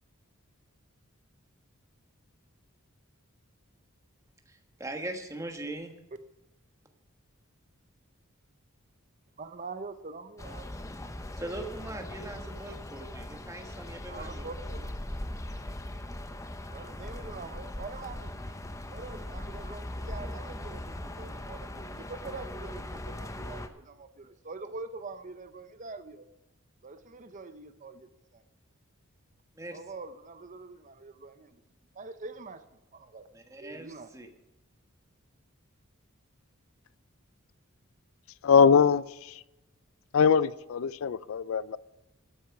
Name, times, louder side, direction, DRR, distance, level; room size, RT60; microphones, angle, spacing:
voice 1, 4.5-5.9 11.4-14.4 29.5-29.8 33.3-34.3, right 2 dB, 15° right, 1.4 m, -40 dB
voice 2, 9.4-10.6 14.1-14.9 16.7-18.3 18.9-20.8 21.2-21.7 22.1-26.2 26.8-28.0 29.7-31.3 32.0-32.6 33.1-33.2 33.6-34.1, right 3 dB, 35° right, 0.6 m, -43 dB
sound 1, 10.4-23.7, left 1 dB, 15° left, 0.7 m, -40 dB
voice 3, 38.4-39.4 40.1-41.8, left 6 dB, 70° left, 0.4 m, -22 dB
12.5 x 8.8 x 5.9 m
head